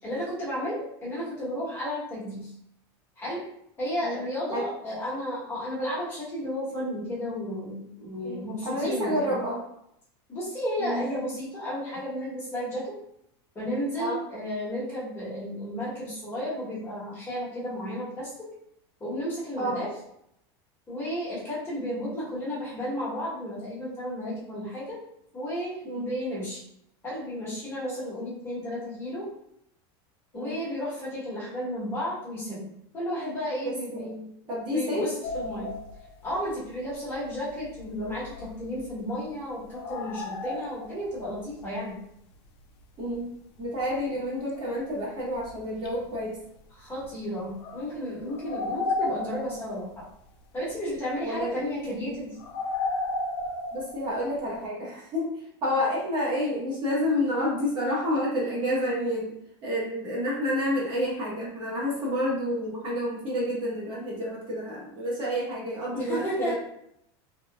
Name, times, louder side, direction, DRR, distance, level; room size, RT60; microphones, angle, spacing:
voice 1, 0.0-2.5 3.2-3.4 3.8-9.4 10.3-13.0 13.5-18.5 19.0-19.9 20.9-25.0 25.3-26.6 27.0-29.3 30.3-34.3 34.6-35.7 36.2-42.0 46.8-50.1 50.5-52.4 65.9-66.6, equal, 20° left, -8 dB, 1.0 m, -33 dB
voice 2, 8.2-9.6 10.8-11.1 14.0-14.2 19.6-19.8 25.8-26.1 30.3-30.6 33.6-34.1 34.5-35.1 43.0-43.3 43.6-46.4 51.2-52.1 53.7-55.3 55.6-59.4 59.6-66.6, equal, 35° right, -5 dB, 0.9 m, -29 dB
sound 1, 35.2-36.5 37.6-38.9 39.6-41.2 41.6-41.7 43.0-43.2 43.6-43.7 43.9-44.0 44.5-44.9 45.4-45.5 45.8-46.1 47.0-47.1 47.6-50.0 52.4-54.4, left 3 dB, 90° left, 0.5 m, -33 dB
2.8 x 2.2 x 2.3 m, 0.74 s
supercardioid pair, 145°, 13 cm